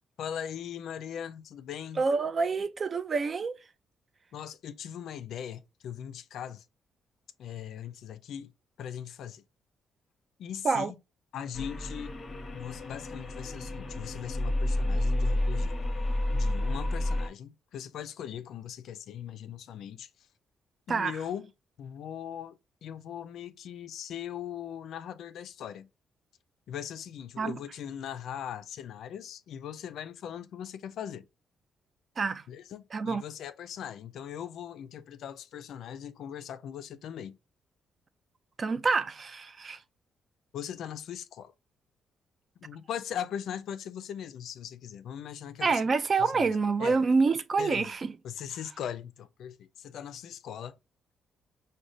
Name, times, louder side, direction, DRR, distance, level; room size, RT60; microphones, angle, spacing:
voice 1, 0.2-2.0 4.3-6.6 7.4-8.5 8.8-9.4 10.4-11.0 11.3-12.1 12.5-15.8 16.3-20.1 20.9-21.5 21.8-25.9 26.7-31.2 32.5-37.4 40.5-41.5 42.6-45.8 46.2-46.5 46.8-47.0 47.6-47.9 48.2-50.8, left 9 dB, 75° left, 0.3 m, -40 dB
voice 2, 2.0-3.6 10.6-10.9 20.9-21.2 27.4-27.6 32.2-32.4 32.9-33.2 38.6-39.8 45.6-48.1, right 4 dB, 40° right, 0.3 m, -27 dB
sound 1, 11.5-17.3, left 1 dB, 40° left, 0.7 m, -30 dB
4.8 x 2.1 x 2.5 m
cardioid pair, 80°, 0 cm